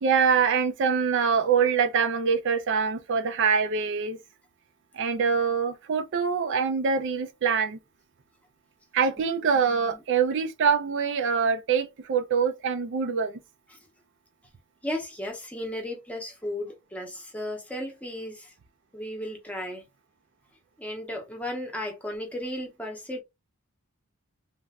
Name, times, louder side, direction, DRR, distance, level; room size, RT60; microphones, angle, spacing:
voice 1, 0.0-4.2 4.9-7.8 8.9-13.4, right 6 dB, 60° right, 0.4 m, -24 dB
voice 2, 9.7-10.0 13.7-13.8 14.8-18.5 18.9-19.9 20.8-23.2, left 1 dB, 5° left, 0.8 m, -35 dB
3.2 x 2.5 x 2.2 m
head